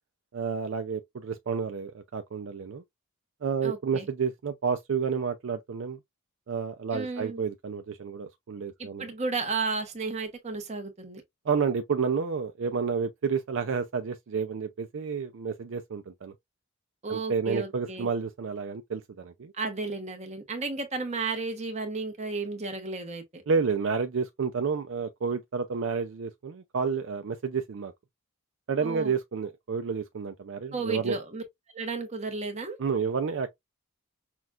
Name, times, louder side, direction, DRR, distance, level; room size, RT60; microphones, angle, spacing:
voice 1, 0.3-2.8 3.4-6.0 6.5-9.1 11.5-16.3 17.1-19.5 23.5-27.9 28.7-31.2 32.8-33.5, right 5 dB, 60° right, 0.4 m, -30 dB
voice 2, 3.6-4.1 6.9-7.4 8.8-11.2 17.0-18.1 19.6-23.4 28.8-29.1 30.7-31.4 31.7-32.8, right 3 dB, 30° right, 1.0 m, -33 dB
5.8 x 2.3 x 2.4 m
head